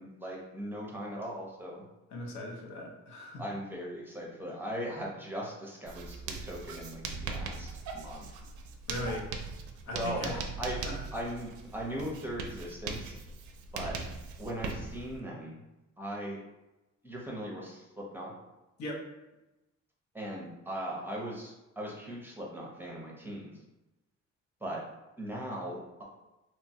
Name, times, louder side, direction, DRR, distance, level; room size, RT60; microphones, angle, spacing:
voice 1, 0.0-1.8 3.4-8.4 9.8-10.8 11.1-13.2 13.7-14.1 14.4-15.6 16.0-16.4 17.0-18.3 20.1-23.5 24.6-24.8 25.2-26.0, equal, 5° right, -3 dB, 0.6 m, -39 dB
voice 2, 2.1-3.4 8.9-9.3 9.9-10.3 10.8-11.0 18.8-19.0, left 1 dB, 65° left, 0 dB, 0.7 m, -38 dB
Writing, 5.9-15.2, right 4 dB, 75° right, 0.5 m, -40 dB
2.9 x 2.2 x 2.7 m, 1.0 s
cardioid pair, 90°, 30 cm